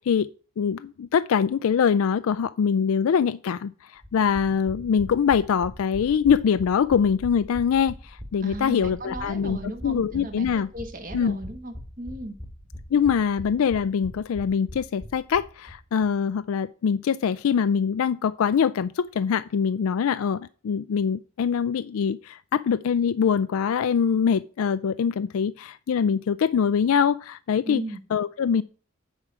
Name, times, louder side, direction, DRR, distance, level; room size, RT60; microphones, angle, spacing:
voice 1, 0.6-10.7 11.1-11.4 12.9-27.8 28.1-28.6, left 7 dB, 75° left, 0.3 m, -23 dB
sound 1, 4.0-15.8 16.0-16.1 16.3-16.4, left 1 dB, 10° right, 1.7 m, -41 dB
voice 2, 8.4-12.4 27.6-28.0, right 1 dB, 40° right, 1.6 m, -36 dB
9.8 x 4.9 x 7.3 m
head